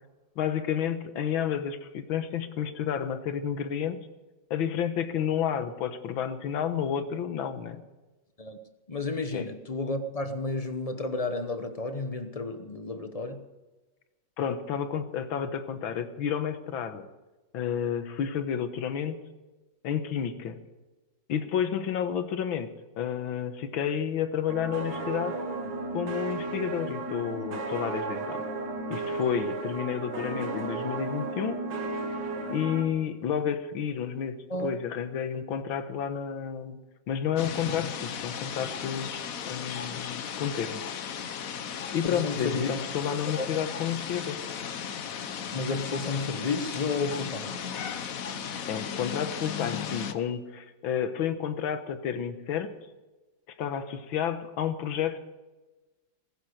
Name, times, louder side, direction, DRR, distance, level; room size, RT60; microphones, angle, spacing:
voice 1, 0.4-4.0 4.5-7.8 9.3-9.5 14.4-17.1 17.5-19.2 19.8-20.6 21.3-25.4 25.9-28.4 28.9-31.6 32.5-36.8 37.1-39.1 39.5-40.8 41.9-44.4 48.7-52.7 53.6-55.2, left 8 dB, 85° left, 10 dB, 1.9 m, -31 dB
voice 2, 8.9-13.4 34.5-34.8 42.1-42.7 43.3-43.5 45.5-47.6, left 3 dB, 30° left, 8 dB, 0.7 m, -32 dB
sound 1, 24.5-32.8, right 3 dB, 65° right, 2.3 m, -34 dB
sound 2, 37.4-50.1, left 7 dB, 55° left, 1.1 m, -36 dB
19.5 x 10.5 x 6.6 m, 1.1 s
omnidirectional pair, 2.1 m